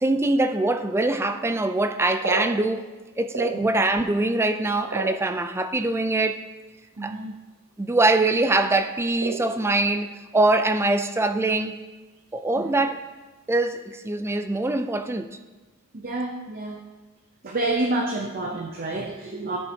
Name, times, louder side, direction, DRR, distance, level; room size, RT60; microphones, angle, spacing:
voice 1, 0.0-2.9 3.2-6.5 7.0-7.1 7.8-11.7 12.3-13.0 13.5-15.3, right 2 dB, 10° right, 0.3 m, -23 dB
sound 1, 1.8-4.0 4.3-5.8 6.6-6.7 6.9-7.3 7.6-8.0 8.2-8.5 9.2-10.2 10.4-11.3 11.6-11.7 12.1-12.4 12.9-13.2, right 3 dB, 70° right, 1.0 m, -33 dB
voice 2, 7.0-7.4 12.5-12.7 15.9-16.8 17.4-19.6, right 2 dB, 40° right, 0.7 m, -29 dB
13.5 x 5.5 x 2.8 m
head